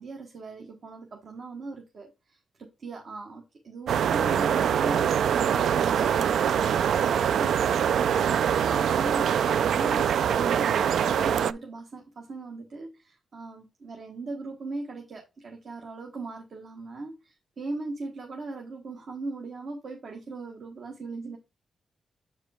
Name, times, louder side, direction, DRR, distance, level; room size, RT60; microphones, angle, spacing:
voice 1, 0.0-21.4, right 3 dB, 65° right, 1.3 m, -38 dB
sound 1, 3.9-11.5, right 8 dB, 90° right, 0.3 m, -24 dB
7.5 x 4.8 x 3.4 m
cardioid pair, 90°, 0 cm